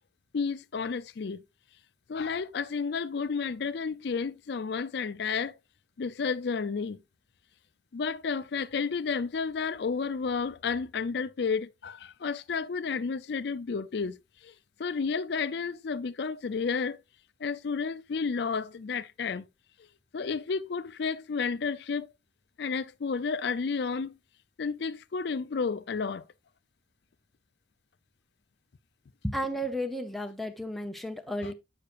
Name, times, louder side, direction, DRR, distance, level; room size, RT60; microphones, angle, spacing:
voice 1, 0.3-1.4 2.1-5.6 6.0-7.0 7.9-14.2 14.4-14.5 14.8-17.0 17.4-19.5 20.1-22.1 22.6-24.2 24.6-26.2 31.4-31.5, left 5 dB, 55° left, 0.4 m, -31 dB
voice 2, 29.2-31.5, equal, ahead, 0.7 m, -33 dB
7.7 x 6.6 x 2.5 m
head